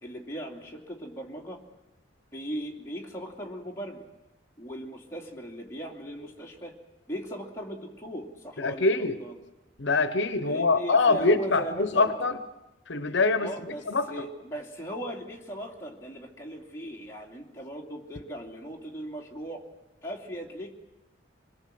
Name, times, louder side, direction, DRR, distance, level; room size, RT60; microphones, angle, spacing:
voice 1, 0.0-1.6 2.3-4.1 4.6-6.7 7.1-9.4 10.4-12.1 13.4-19.7 20.0-20.8, equal, 15° left, 0 dB, 2.7 m, -38 dB
voice 2, 8.6-9.2 9.8-12.4 12.9-13.5 13.9-14.1, left 3 dB, 70° left, 12 dB, 1.0 m, -24 dB
26.5 x 21.0 x 7.8 m, 0.98 s
head